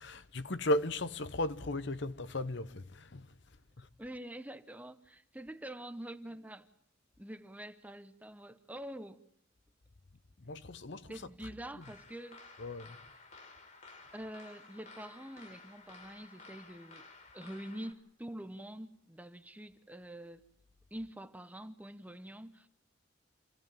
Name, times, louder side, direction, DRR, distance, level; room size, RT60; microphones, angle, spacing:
voice 1, 0.0-3.9 10.4-11.9 12.6-13.0, left 1 dB, 60° left, 0.9 m, -37 dB
voice 2, 4.0-6.7 7.2-9.2 11.1-12.5 14.1-17.1 17.3-20.4 20.9-22.7, right 1 dB, 10° right, 0.9 m, -46 dB
sound 1, 11.8-17.9, left 3 dB, 35° left, 2.6 m, -54 dB
27.5 x 16.5 x 9.0 m
head